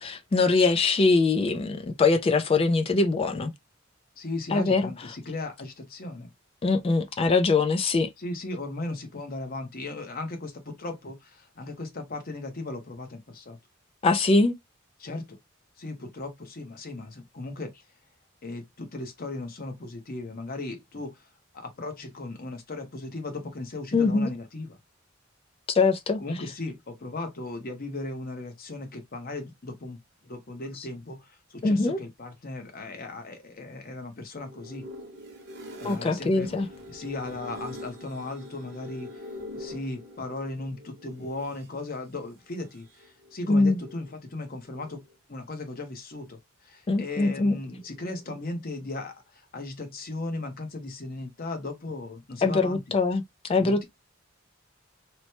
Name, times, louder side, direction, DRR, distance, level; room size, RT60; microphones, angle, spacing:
voice 1, 0.0-3.5 4.5-4.8 6.6-8.1 14.0-14.5 23.9-24.3 25.7-26.2 31.6-32.0 35.8-36.7 43.5-43.8 46.9-47.5 52.4-53.2 53.5-53.8, left 3 dB, 30° left, 0.3 m, -22 dB
voice 2, 4.2-6.3 8.2-13.6 15.0-15.4 15.8-17.8 18.4-21.3 21.5-24.8 26.2-30.0 30.2-34.9 35.8-36.6 36.9-39.3 39.5-45.0 45.3-52.8 53.6-53.8, left 2 dB, 45° left, 0.8 m, -37 dB
sound 1, 34.4-41.7 42.6-44.1 44.5-45.2 47.6-48.4, left 1 dB, 55° right, 0.9 m, -44 dB
3.0 x 2.1 x 2.8 m
head